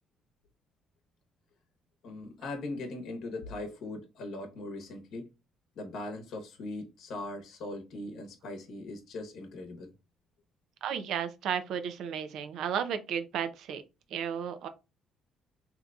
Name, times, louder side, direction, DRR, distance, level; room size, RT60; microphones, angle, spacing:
voice 1, 2.0-5.3 5.7-9.9, left 2 dB, 65° left, 0.9 m, -40 dB
voice 2, 10.8-13.8 14.1-14.7, right 8 dB, 70° right, 0.5 m, -33 dB
3.8 x 2.8 x 2.3 m
cardioid pair, 115°, 0 cm